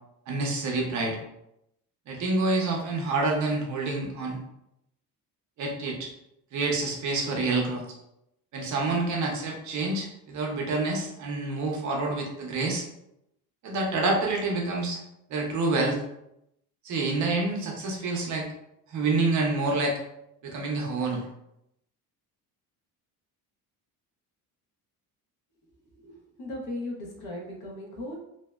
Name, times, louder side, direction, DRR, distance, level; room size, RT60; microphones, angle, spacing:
voice 1, 0.3-1.2 2.1-4.4 5.6-6.1 6.5-7.8 8.5-12.9 13.6-15.0 15.3-16.0 16.8-18.5 18.9-20.0 20.4-21.3, right 3 dB, 50° right, 0 dB, 0.6 m, -27 dB
voice 2, 25.8-28.2, left 1 dB, 75° left, -1 dB, 0.9 m, -37 dB
2.7 x 2.0 x 2.2 m, 0.81 s
cardioid pair, 160°, 38 cm